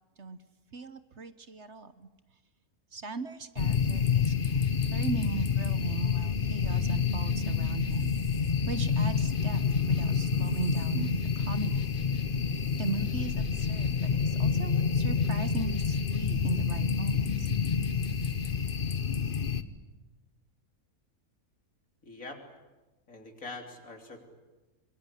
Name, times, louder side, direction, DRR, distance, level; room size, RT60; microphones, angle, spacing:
voice 1, 0.7-2.1 2.9-4.3 4.8-8.2 8.7-9.6 9.9-11.9 12.8-17.5, right 4 dB, 50° right, 12 dB, 1.3 m, -37 dB
scary night complete, 3.6-19.6, left 6 dB, 40° left, 1.2 m, -28 dB
voice 2, 22.0-22.4 23.1-24.3, left 2 dB, 60° left, 4 dB, 3.9 m, -44 dB
25.0 x 23.5 x 9.9 m, 1.1 s
omnidirectional pair, 1.5 m